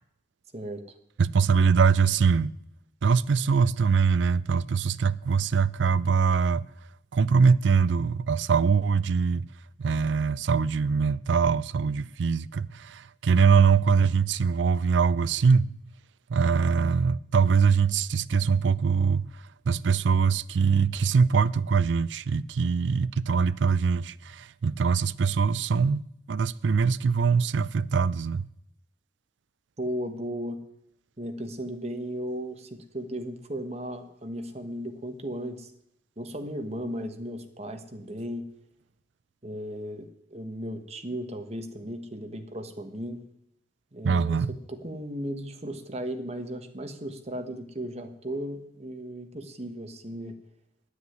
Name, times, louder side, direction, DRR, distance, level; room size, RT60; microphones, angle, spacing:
voice 1, 1.2-2.5 3.0-6.6 7.1-9.4 9.8-15.7 16.3-19.3 19.7-26.0 26.3-28.4 44.0-44.5, right 5 dB, 85° right, 0.4 m, -23 dB
voice 2, 29.8-30.6 31.2-35.7 36.2-38.5 39.4-43.2 43.9-50.4, equal, 35° right, 1.3 m, -36 dB
9.8 x 7.9 x 9.4 m
head